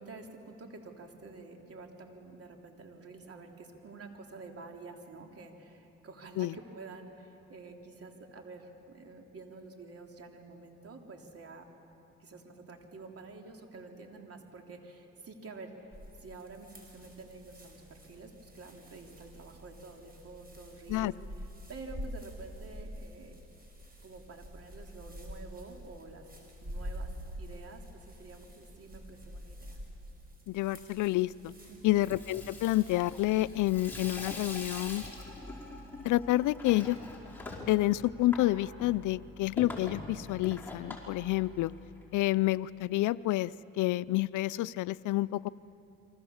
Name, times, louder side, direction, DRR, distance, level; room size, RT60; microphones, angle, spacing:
voice 1, 0.0-11.7 12.2-15.9 16.2-21.1 21.7-23.3 24.0-26.3 26.6-27.1 27.4-29.8 31.7-32.0, right 3 dB, 50° right, 2 dB, 3.3 m, -49 dB
sound 1, 15.9-34.9, equal, 30° right, 5.9 m, -47 dB
voice 2, 30.5-31.5 31.8-35.0 36.0-37.0 37.7-41.7 42.1-45.5, left 16 dB, 80° left, 18 dB, 0.5 m, -29 dB
Water tap faucet / Sink (filling or washing), 31.8-42.0, left 2 dB, 5° left, 5.1 m, -44 dB
28.0 x 24.5 x 7.2 m, 3.0 s
cardioid pair, 90°, 30 cm